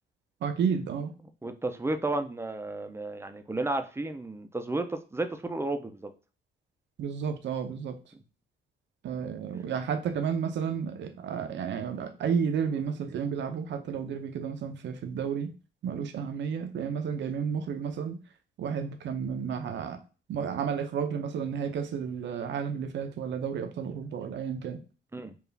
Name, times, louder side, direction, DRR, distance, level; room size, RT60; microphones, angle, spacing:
voice 1, 0.4-1.1 7.0-8.0 9.0-15.5 15.8-18.2 18.6-20.0 20.3-24.8, right 7 dB, 65° right, 0.7 m, -32 dB
voice 2, 1.4-6.1 25.1-25.3, right 2 dB, 15° right, 0.5 m, -32 dB
4.6 x 2.4 x 3.3 m
cardioid pair, 90°, 20 cm